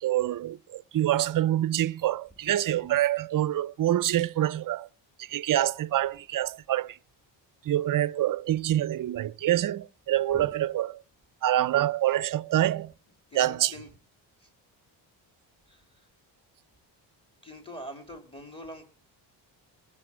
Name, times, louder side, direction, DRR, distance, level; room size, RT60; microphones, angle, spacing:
voice 1, 0.0-4.9 5.2-7.0 7.6-10.9 11.4-12.9 13.4-13.7, right 13 dB, 45° right, 0.6 m, -26 dB
voice 2, 13.3-13.9 14.4-14.5 15.7-16.1 17.4-18.8, equal, 10° left, 3.6 m, -44 dB
19.5 x 6.9 x 6.1 m
cardioid pair, 85°, 47 cm